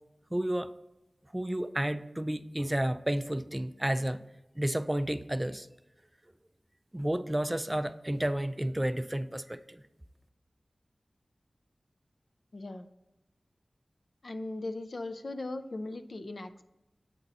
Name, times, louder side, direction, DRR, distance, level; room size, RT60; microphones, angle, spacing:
voice 1, 0.3-0.7 1.3-4.2 4.6-5.7 6.9-9.8, right 1 dB, 15° right, 12 dB, 0.3 m, -31 dB
voice 2, 12.5-12.9 14.2-16.6, left 2 dB, 65° left, 8 dB, 0.4 m, -38 dB
8.3 x 4.1 x 4.0 m, 0.98 s
wide cardioid pair, 65°, 0 cm